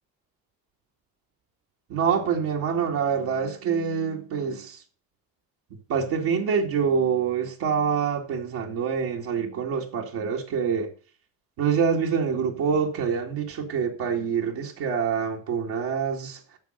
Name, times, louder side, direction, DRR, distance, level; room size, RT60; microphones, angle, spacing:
voice 1, 1.9-4.8 5.9-10.9 11.6-16.4, right 6 dB, 75° right, 2.3 m, -26 dB
10.5 x 6.6 x 6.3 m
supercardioid pair, 75°, 37 cm